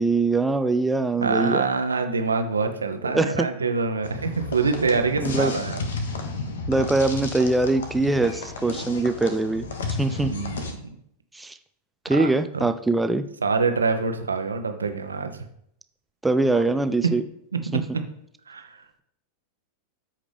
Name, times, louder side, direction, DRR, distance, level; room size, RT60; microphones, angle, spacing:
voice 1, 0.0-1.7 3.0-3.5 5.2-5.5 6.7-9.6 10.0-10.3 11.3-11.6 12.0-13.2 16.2-17.2 17.7-17.8, right 2 dB, 5° right, 9 dB, 0.5 m, -22 dB
voice 2, 1.2-5.9 10.2-10.6 12.1-12.7 13.4-15.4 17.0-17.1 17.5-18.0 18.5-18.7, right 4 dB, 75° right, 7 dB, 1.0 m, -25 dB
sound 1, 4.0-10.7, left 3 dB, 65° left, 1.0 m, -32 dB
13.0 x 5.0 x 3.5 m, 0.72 s
figure-of-eight pair, 90°, 0 cm